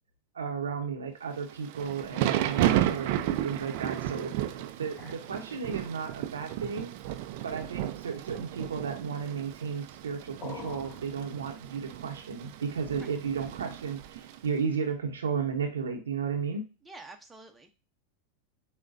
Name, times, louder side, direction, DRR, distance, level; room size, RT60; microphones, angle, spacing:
voice 1, 0.3-6.9 7.4-16.7, right 6 dB, 90° right, 4 dB, 0.8 m, -34 dB
Thunder / Rain, 1.4-14.5, right 12 dB, 60° right, 0.4 m, -33 dB
sound 1, 4.3-13.8, left 3 dB, 35° left, 2.2 m, -51 dB
voice 2, 16.8-17.7, right 2 dB, 10° right, 4 dB, 0.8 m, -49 dB
6.4 x 2.2 x 2.6 m, 0.30 s
hypercardioid pair, 100°, 0 cm